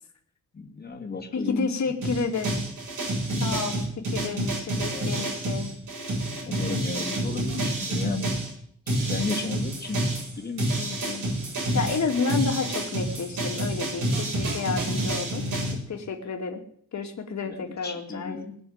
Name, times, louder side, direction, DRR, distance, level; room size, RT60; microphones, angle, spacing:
voice 1, 0.5-1.7 4.9-5.4 6.5-8.4 8.9-10.0 10.4-10.8 17.4-18.6, left 4 dB, 30° left, 1 dB, 2.3 m, -34 dB
voice 2, 1.3-2.7 3.4-3.8 4.1-5.7 10.8-11.3 11.7-15.4 15.9-16.6 16.9-18.4, left 5 dB, 55° left, 3 dB, 2.6 m, -30 dB
sound 1, 2.0-8.5 8.9-15.7, right 1 dB, 70° right, 7.7 m, -28 dB
20.5 x 7.0 x 8.8 m, 0.64 s
wide cardioid pair, 160°, 32 cm